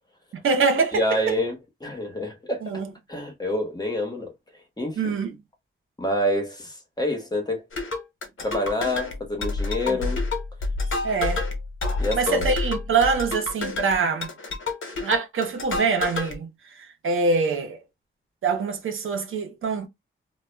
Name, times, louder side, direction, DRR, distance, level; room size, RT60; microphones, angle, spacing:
voice 1, 0.3-1.4 2.6-2.9 5.0-5.4 9.9-10.1 11.0-11.4 12.1-14.3 15.0-16.5 17.0-17.8 18.4-19.9, right 4 dB, 80° right, 0.7 m, -24 dB
voice 2, 0.9-2.6 3.1-4.3 4.8-5.1 6.0-7.6 8.4-10.2 12.0-12.5, left 1 dB, 20° left, 1.0 m, -27 dB
sound 1, 7.7-16.3, left 3 dB, 75° left, 0.9 m, -29 dB
2.2 x 2.0 x 3.2 m
wide cardioid pair, 115°, 20 cm